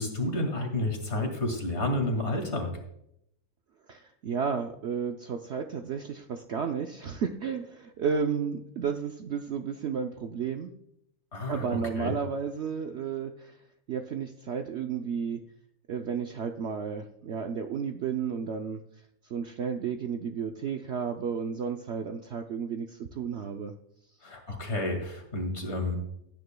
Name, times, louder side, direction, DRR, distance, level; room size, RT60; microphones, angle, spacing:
voice 1, 0.0-2.7 11.3-12.1 24.2-26.0, left 1 dB, 45° left, 3 dB, 2.4 m, -30 dB
voice 2, 3.9-10.7 11.5-13.5 13.9-15.4 15.9-18.8 19.3-23.7, right 6 dB, 60° right, 4 dB, 0.7 m, -32 dB
17.0 x 9.7 x 2.2 m, 0.75 s
omnidirectional pair, 1.6 m